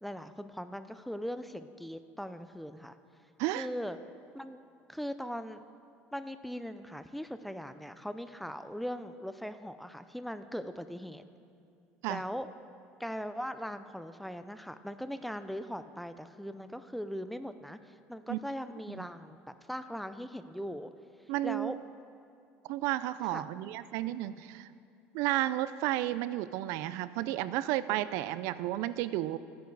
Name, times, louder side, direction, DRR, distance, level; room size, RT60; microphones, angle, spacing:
voice 1, 0.0-3.0 3.5-4.0 4.3-4.6 4.9-5.6 6.1-11.2 12.1-12.5 13.0-19.4 19.7-20.9 21.4-21.8 23.3-23.4, equal, ahead, 11 dB, 0.4 m, -40 dB
voice 2, 21.3-21.8 22.7-24.7 25.1-29.4, right 15 dB, 75° right, 15 dB, 0.4 m, -32 dB
13.5 x 9.4 x 4.7 m, 2.5 s
cardioid pair, 135°, 5 cm